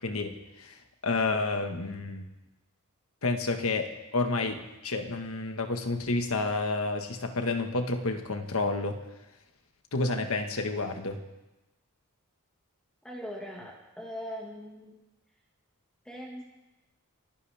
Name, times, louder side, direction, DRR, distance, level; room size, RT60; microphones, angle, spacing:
voice 1, 0.0-2.2 3.2-9.0 9.9-11.2, left 3 dB, 70° left, 6 dB, 1.5 m, -30 dB
voice 2, 13.0-15.0 16.1-16.4, equal, 5° left, -2 dB, 1.9 m, -40 dB
29.5 x 11.5 x 3.5 m, 1.0 s
head